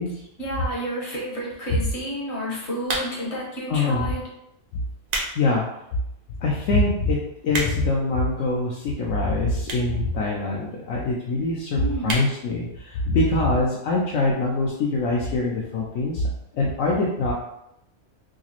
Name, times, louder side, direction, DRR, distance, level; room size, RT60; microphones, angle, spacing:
voice 1, 0.4-4.2 11.7-12.2, equal, 60° left, -4 dB, 1.3 m, -30 dB
sound 1, 2.8-3.4 4.1-4.3 4.8-5.4 5.8-5.9 6.5-6.6 6.8-6.9 7.1-8.0 8.8-8.9 9.6-10.0 10.3-10.4 10.6-10.7 10.9-11.0 11.3-11.5 12.0-12.3 12.7-12.8 13.0-13.1, right 1 dB, 45° right, 0.5 m, -29 dB
voice 2, 3.7-4.1 5.4-5.6 6.4-7.2 7.4-16.2 16.5-17.3, left 2 dB, 80° left, -4 dB, 1.0 m, -23 dB
4.8 x 2.0 x 2.9 m, 0.81 s
omnidirectional pair, 1.3 m